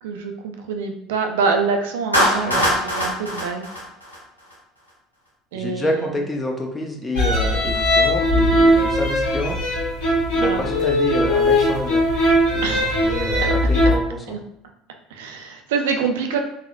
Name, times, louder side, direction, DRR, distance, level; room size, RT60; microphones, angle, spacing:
voice 1, 0.0-3.6 5.5-6.2 10.4-10.6 12.6-13.2 14.3-14.4 15.1-16.4, right 5 dB, 65° right, 4 dB, 0.4 m, -25 dB
Clapping, 2.1-4.5, equal, 90° left, 0.6 m, -22 dB
voice 2, 5.5-9.6 10.3-12.1 12.5-12.7 13.0-14.4, left 1 dB, 20° left, 3 dB, 0.6 m, -27 dB
sound 1, 7.1-13.9, equal, 70° left, 0.9 m, -19 dB
3.5 x 2.1 x 2.5 m, 0.77 s
figure-of-eight pair, 65°, 0 cm